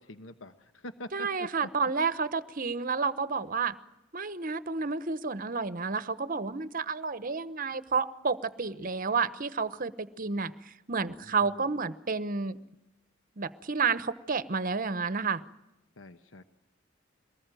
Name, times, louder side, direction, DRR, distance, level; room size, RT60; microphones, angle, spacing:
voice 1, 0.0-1.7 11.2-11.7 16.0-16.4, left 1 dB, 80° left, 9 dB, 1.1 m, -45 dB
voice 2, 1.1-3.7 4.1-12.6 13.4-15.4, right 4 dB, 45° right, 14 dB, 1.0 m, -30 dB
23.5 x 19.5 x 9.1 m, 0.93 s
head